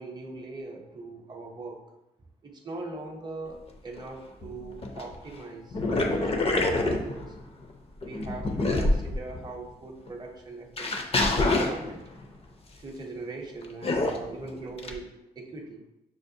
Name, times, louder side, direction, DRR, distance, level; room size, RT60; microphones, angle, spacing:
voice 1, 0.0-1.8 2.4-7.4 8.0-12.0 12.8-15.9, right 3 dB, 25° right, 0 dB, 0.6 m, -41 dB
sound 1, 4.0-4.1 4.4-5.1 5.7-7.6 8.0-9.5 10.1-10.2 10.8-12.2 13.8-14.3 14.8-14.9, left 2 dB, 35° left, 0.5 m, -26 dB
6.3 x 2.1 x 2.7 m, 0.91 s
cardioid pair, 80°, 17 cm